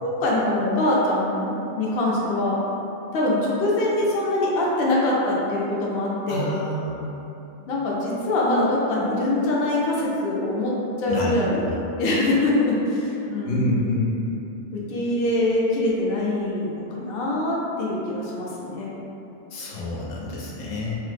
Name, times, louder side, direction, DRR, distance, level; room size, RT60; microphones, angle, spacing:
voice 1, 0.0-2.6 3.1-6.5 7.7-11.7 11.9-13.9 14.7-18.9, left 1 dB, 60° left, -5 dB, 0.7 m, -23 dB
voice 2, 6.3-7.1 11.1-11.8 13.5-14.2 19.5-21.0, left 1 dB, 90° left, -4 dB, 1.0 m, -27 dB
3.0 x 2.0 x 3.2 m, 2.9 s
omnidirectional pair, 1.3 m